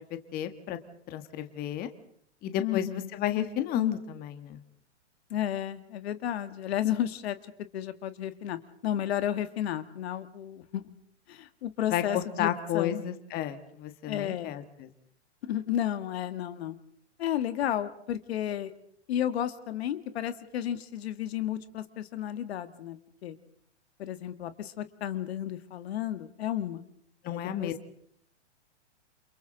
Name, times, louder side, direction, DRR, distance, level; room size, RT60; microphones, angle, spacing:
voice 1, 0.3-0.8 1.1-1.9 2.4-4.6 11.9-14.9 27.2-27.7, left 11 dB, 25° left, 9 dB, 1.5 m, -32 dB
voice 2, 2.6-3.1 5.3-7.4 7.7-10.8 11.3-13.0 14.1-14.6 15.4-16.8 17.2-18.7 19.1-23.4 24.0-26.8 27.3-27.7, left 11 dB, 60° left, 11 dB, 1.6 m, -32 dB
29.5 x 28.5 x 3.9 m, 0.67 s
hypercardioid pair, 140°, 36 cm